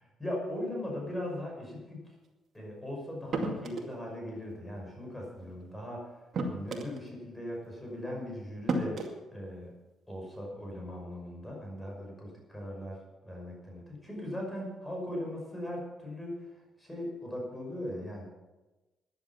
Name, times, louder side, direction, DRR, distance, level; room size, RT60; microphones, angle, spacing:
voice 1, 0.0-2.0 2.5-6.1 6.4-9.0 9.3-9.7 10.1-16.4 16.8-18.3, left 1 dB, 10° left, -1 dB, 5.9 m, -39 dB
sound 1, 3.3-4.0 5.4-5.5 6.3-7.0 8.1-8.2 8.7-9.1, right 3 dB, 55° right, 2.2 m, -32 dB
14.0 x 11.0 x 5.9 m, 1.1 s
cardioid pair, 90°, 0 cm